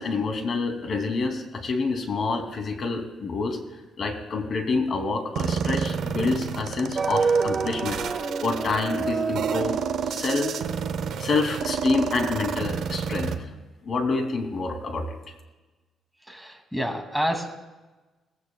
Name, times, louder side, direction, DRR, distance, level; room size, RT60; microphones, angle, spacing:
voice 1, 0.0-3.6 4.0-9.8 10.1-10.6 11.2-13.3 13.8-15.2, left 3 dB, 50° left, 4 dB, 2.7 m, -27 dB
sound 1, 5.4-13.4, right 7 dB, 70° right, 1.0 m, -30 dB
sound 2, 6.9-11.8, right 5 dB, 45° right, 1.2 m, -28 dB
voice 2, 16.3-17.6, equal, ahead, 4 dB, 2.4 m, -28 dB
20.5 x 16.0 x 2.3 m, 1.2 s
cardioid pair, 90°, 0 cm